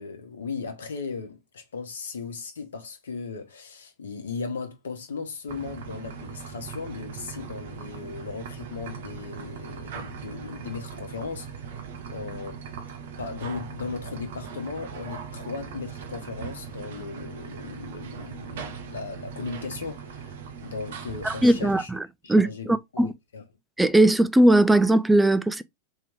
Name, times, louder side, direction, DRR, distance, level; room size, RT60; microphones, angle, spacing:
voice 1, 0.0-12.7 13.2-21.9 22.2-23.4, left 5 dB, 65° left, 1.0 m, -37 dB
sound 1, 5.5-21.8, right 7 dB, 55° right, 0.7 m, -39 dB
voice 2, 21.2-22.0 22.3-23.1 23.8-25.6, right 1 dB, 5° right, 0.4 m, -19 dB
3.6 x 3.1 x 3.5 m
figure-of-eight pair, 90°, 0 cm